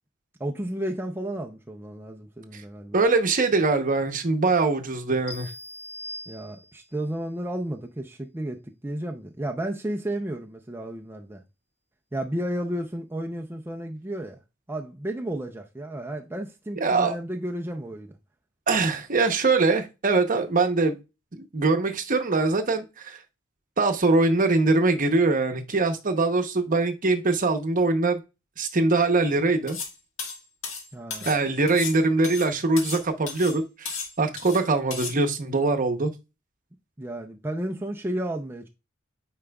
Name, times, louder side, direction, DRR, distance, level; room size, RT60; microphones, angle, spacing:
voice 1, 0.4-3.0 6.3-11.4 12.1-14.4 14.7-18.2 30.9-31.3 37.0-38.7, right 1 dB, 10° right, 0.5 m, -32 dB
voice 2, 2.9-5.5 16.8-17.1 18.7-21.0 21.3-23.2 23.8-28.2 28.6-29.8 31.2-36.1, right 3 dB, 40° right, 0.8 m, -23 dB
sound 1, 5.3-7.0, left 1 dB, 60° left, 1.2 m, -40 dB
sound 2, 29.7-29.9 30.2-31.4 31.7-33.0 33.3-33.6 33.9-34.6 34.9-35.2, left 5 dB, 90° left, 1.6 m, -35 dB
8.6 x 4.8 x 2.3 m
head